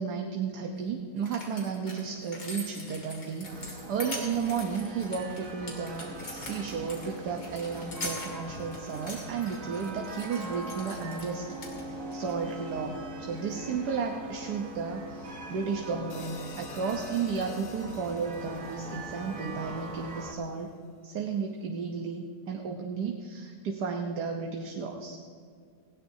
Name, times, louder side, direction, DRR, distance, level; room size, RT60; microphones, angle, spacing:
voice 1, 0.0-20.7 21.0-25.2, right 5 dB, 75° right, 2 dB, 1.5 m, -33 dB
sound 1, 0.8-0.9 1.2-11.3 11.6-12.3 13.4-13.5, left 2 dB, 80° left, 3.2 m, -43 dB
sound 2, 3.4-20.3, right 2 dB, 55° right, 1.8 m, -42 dB
sound 3, 16.1-20.5, left 6 dB, 55° left, 0.7 m, -49 dB
19.0 x 16.5 x 2.7 m, 2.3 s
omnidirectional pair, 1.8 m